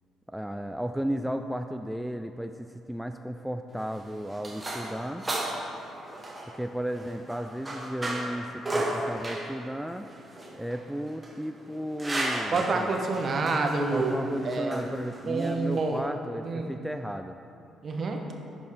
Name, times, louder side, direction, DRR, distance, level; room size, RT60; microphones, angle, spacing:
voice 1, 0.3-5.2 6.5-10.1 10.5-12.9 13.9-17.4, equal, 5° right, 7 dB, 0.3 m, -34 dB
sound 1, 3.7-16.0, right 1 dB, 20° right, 1.5 m, -35 dB
voice 2, 12.5-14.2 14.4-14.9 15.2-16.0 16.4-16.7 17.8-18.2, right 3 dB, 45° right, 3 dB, 1.0 m, -28 dB
11.0 x 4.3 x 4.8 m, 2.7 s
figure-of-eight pair, 45°, 0 cm